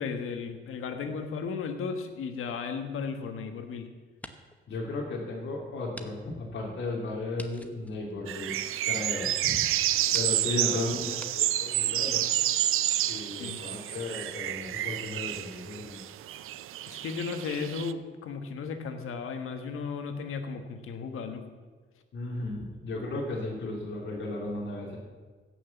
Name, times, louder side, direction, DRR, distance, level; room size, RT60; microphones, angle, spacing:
voice 1, 0.0-3.9 10.1-10.2 10.5-10.9 13.4-13.6 16.9-21.5, left 5 dB, 85° left, 6 dB, 1.4 m, -35 dB
sound 1, 2.7-3.7 4.1-4.7 5.1-5.2 5.9-6.1 6.4-6.5 7.3-8.9 9.6-9.7 10.1-10.4 11.2-11.3, left 1 dB, 5° left, 0.9 m, -48 dB
voice 2, 4.7-8.6 8.8-9.7 10.1-12.2 13.1-16.0 22.1-25.0, left 2 dB, 60° left, -2 dB, 2.7 m, -35 dB
sound 2, 8.3-17.9, right 13 dB, 85° right, 0.5 m, -29 dB
16.0 x 6.2 x 7.1 m, 1.4 s
cardioid pair, 100°, 21 cm